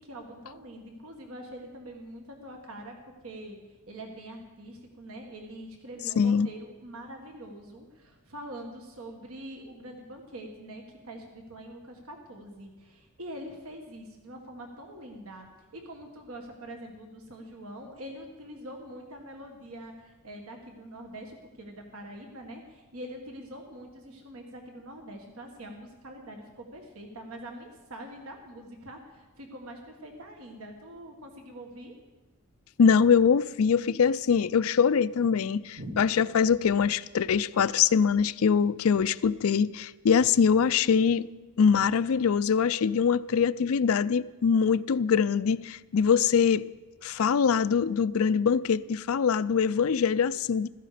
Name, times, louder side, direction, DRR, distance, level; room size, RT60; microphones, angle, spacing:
voice 1, 0.0-3.0 3.2-3.6 3.9-15.5 15.7-31.9 35.8-36.0, right 1 dB, 80° right, 1.7 m, -44 dB
voice 2, 6.2-6.5 32.8-41.3 41.6-46.6 47.0-50.7, left 6 dB, 70° left, 0.4 m, -23 dB
16.0 x 14.0 x 5.0 m
head